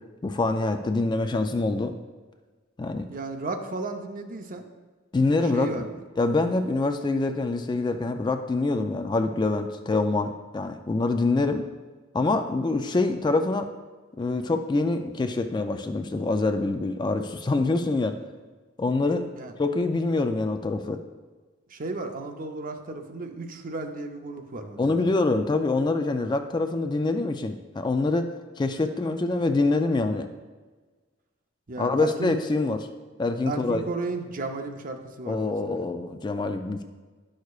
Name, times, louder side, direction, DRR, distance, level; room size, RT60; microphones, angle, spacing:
voice 1, 0.2-1.9 2.8-3.1 5.1-5.8 6.2-11.7 12.1-13.7 14.2-18.2 18.8-19.3 19.6-21.0 24.8-30.3 31.8-32.9 33.2-33.8 35.3-36.8, left 3 dB, 20° left, 7 dB, 0.3 m, -25 dB
voice 2, 3.1-4.7 5.5-6.0 19.4-19.5 21.7-25.1 31.7-32.3 33.5-35.8, right 3 dB, 45° right, 5 dB, 0.6 m, -34 dB
10.5 x 6.4 x 2.4 m, 1.3 s
head